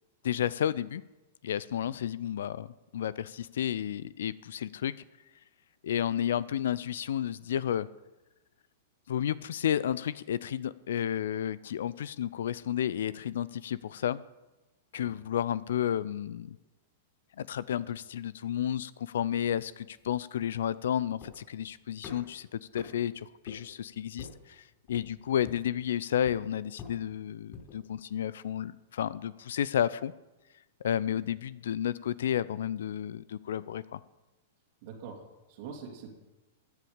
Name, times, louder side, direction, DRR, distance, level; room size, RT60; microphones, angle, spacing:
voice 1, 0.2-1.0 1.4-2.7 2.9-4.9 5.8-7.9 9.1-14.2 14.9-16.6 17.4-30.1 30.8-34.0, left 10 dB, 60° left, 19 dB, 0.5 m, -32 dB
sound 1, 19.7-27.8, left 6 dB, 30° left, 5.6 m, -50 dB
voice 2, 34.8-36.1, right 6 dB, 50° right, 1 dB, 2.4 m, -45 dB
15.5 x 10.5 x 5.1 m, 1.1 s
figure-of-eight pair, 100°, 0 cm